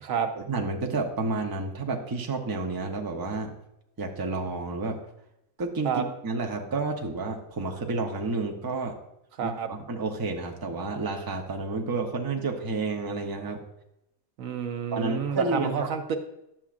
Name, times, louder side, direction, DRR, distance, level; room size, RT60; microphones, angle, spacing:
voice 1, 0.5-3.5 4.0-5.0 5.6-8.9 9.4-13.6 14.9-15.9, right 3 dB, 20° right, 2 dB, 0.6 m, -30 dB
voice 2, 9.4-9.7 14.4-16.2, right 7 dB, 70° right, 5 dB, 1.1 m, -29 dB
11.0 x 7.2 x 2.5 m, 0.83 s
omnidirectional pair, 1.4 m